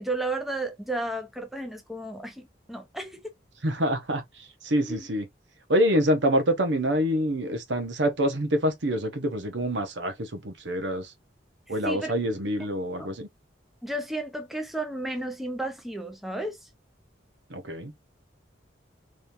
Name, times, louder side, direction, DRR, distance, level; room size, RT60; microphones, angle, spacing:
voice 1, 0.0-3.2 4.7-5.1 11.8-12.4 12.9-13.1 13.8-16.7, right 2 dB, ahead, 0.6 m, -33 dB
voice 2, 3.6-4.2 4.6-5.2 5.7-11.1 11.7-13.3 17.5-17.9, equal, 75° right, 0.9 m, -26 dB
3.7 x 3.1 x 2.6 m
head